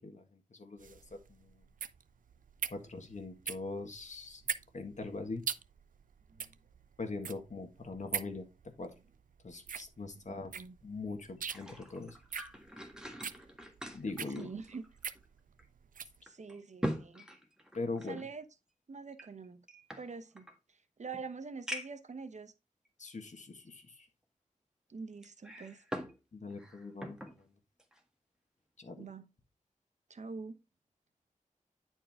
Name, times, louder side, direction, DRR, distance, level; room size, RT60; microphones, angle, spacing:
voice 1, 0.0-1.6 2.6-4.4 4.7-5.4 7.0-8.5 8.8-8.9 9.4-12.2 13.9-14.5 17.7-18.3 23.0-24.1 26.3-27.5 28.8-29.1, left 3 dB, 60° left, 1.7 m, -42 dB
sound 1, 0.8-16.2, right 7 dB, 80° right, 0.5 m, -42 dB
voice 2, 10.1-10.7 14.4-14.8 16.2-17.3 18.1-18.4 18.9-19.7 20.0-22.5 24.9-25.8 29.0-29.3 30.1-30.6, right 4 dB, 60° right, 0.9 m, -45 dB
sound 2, 11.2-15.2 15.6-15.7 16.3-18.2 19.1-20.6 21.1-21.2 21.7-22.1 22.8-22.9 25.2-26.2 26.5-27.4 27.8-28.0, equal, 5° right, 1.6 m, -43 dB
9.9 x 4.7 x 3.5 m
wide cardioid pair, 95°, 14 cm